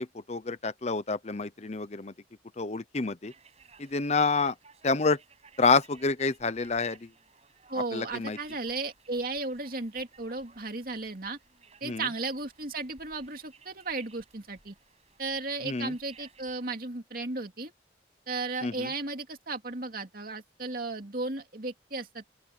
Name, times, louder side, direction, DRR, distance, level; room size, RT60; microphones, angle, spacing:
voice 1, 0.0-2.1 2.6-3.3 3.8-4.5 4.8-5.2 5.6-7.1 7.9-8.4 11.8-12.0 15.6-15.9 18.6-18.9, left 4 dB, 40° left, 0.8 m, -28 dB
sound 1, 3.2-16.7, right 5 dB, 35° right, 7.1 m, -59 dB
voice 2, 7.7-11.4 11.8-14.7 15.2-17.7 18.3-22.3, right 3 dB, 55° right, 2.6 m, -35 dB
open air
head